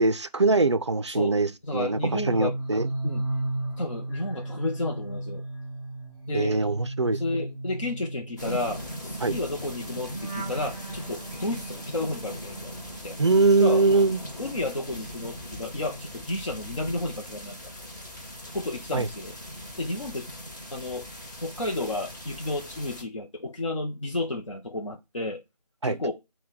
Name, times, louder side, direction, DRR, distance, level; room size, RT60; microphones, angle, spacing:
voice 1, 0.0-2.9 6.3-7.2 9.2-9.3 13.2-14.2 18.9-19.1 25.8-26.0, right 3 dB, 45° right, 0.4 m, -22 dB
voice 2, 1.6-2.6 3.0-3.2 3.8-5.4 6.3-6.6 7.2-8.8 9.0-12.7 13.0-13.2 13.6-13.8 14.4-17.6 18.5-19.4 19.8-20.3 20.7-21.1 21.4-25.4 25.8-26.1, left 2 dB, 50° left, 0.6 m, -32 dB
sound 1, 1.8-14.0 14.3-16.4 16.7-17.1, right 2 dB, 5° left, 1.8 m, -36 dB
sound 2, 8.4-23.0, equal, 30° left, 1.0 m, -39 dB
6.2 x 2.2 x 3.7 m
figure-of-eight pair, 165°, 20 cm